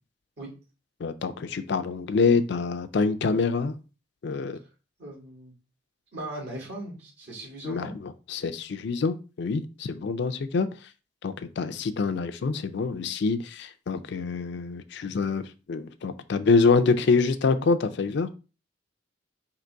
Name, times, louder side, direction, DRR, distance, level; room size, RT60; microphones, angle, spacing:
voice 1, 1.0-3.7 4.2-4.6 7.6-10.7 11.2-18.3, left 4 dB, 65° left, 0.4 m, -26 dB
voice 2, 5.0-5.5 6.1-7.9, right 1 dB, 65° right, 1.8 m, -38 dB
3.8 x 2.9 x 4.5 m
head